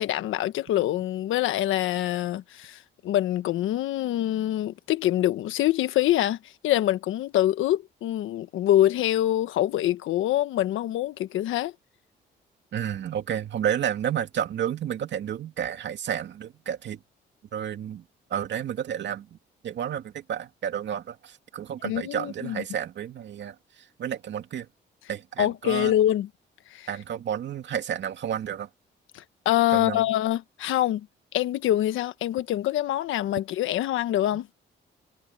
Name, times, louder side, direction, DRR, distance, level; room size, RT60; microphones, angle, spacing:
voice 1, 0.0-6.4 6.6-11.7 21.8-22.6 25.4-26.3 26.7-26.9 29.1-31.1 31.3-34.5, left 13 dB, 85° left, 1.4 m, -25 dB
voice 2, 12.7-17.0 17.5-18.0 18.3-19.3 19.6-23.6 24.0-24.7 25.1-25.9 26.9-28.7 29.7-30.0, right 9 dB, 65° right, 2.5 m, -31 dB
cardioid pair, 90°, 20 cm